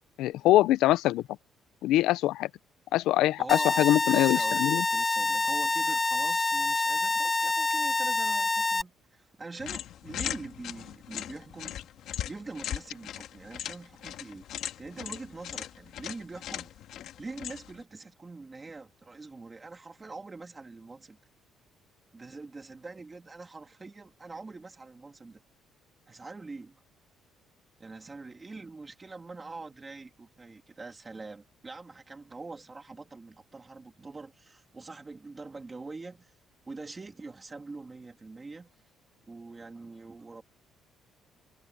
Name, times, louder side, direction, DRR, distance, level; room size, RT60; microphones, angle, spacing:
voice 1, 0.2-1.2 1.8-2.5 2.9-4.8, left 15 dB, 85° left, 0.5 m, -23 dB
voice 2, 3.4-11.8 12.3-16.7 17.2-21.2 22.1-25.4 26.1-26.8 27.8-36.3 36.6-38.7 39.3-40.4, right 3 dB, 20° right, 3.1 m, -44 dB
sound 1, 3.5-8.8, left 3 dB, 15° left, 0.4 m, -27 dB
sound 2, 9.6-17.8, left 11 dB, 65° left, 2.0 m, -39 dB
cardioid pair, 155°, 0 cm